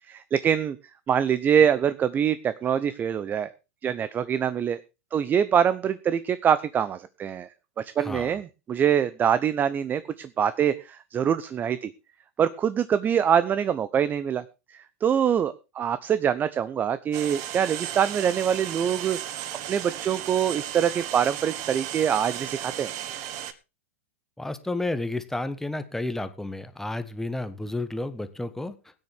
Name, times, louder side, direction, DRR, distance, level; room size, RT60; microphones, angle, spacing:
voice 1, 0.1-0.8 1.1-3.5 3.8-4.8 5.1-7.5 7.8-11.9 12.4-14.4 14.7-19.2 19.7-22.9, right 8 dB, 25° right, 14 dB, 0.8 m, -24 dB
voice 2, 8.0-8.3 24.4-28.7, left 2 dB, 5° left, 11 dB, 1.3 m, -31 dB
sound 1, 17.1-23.5, right 11 dB, 45° right, 1.5 m, -35 dB
17.5 x 9.7 x 3.5 m, 0.28 s
hypercardioid pair, 105°, 7 cm